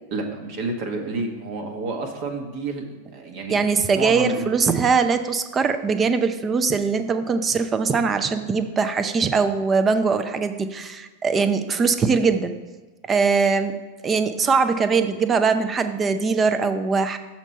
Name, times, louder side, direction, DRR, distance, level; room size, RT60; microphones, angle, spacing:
voice 1, 0.1-2.9 3.1-3.6 3.9-4.5, right 3 dB, 45° right, 3 dB, 1.0 m, -29 dB
voice 2, 3.5-12.5 13.1-13.7 14.0-17.2, right 5 dB, 20° right, 9 dB, 0.5 m, -21 dB
7.1 x 4.5 x 5.3 m, 1.2 s
figure-of-eight pair, 90°, 0 cm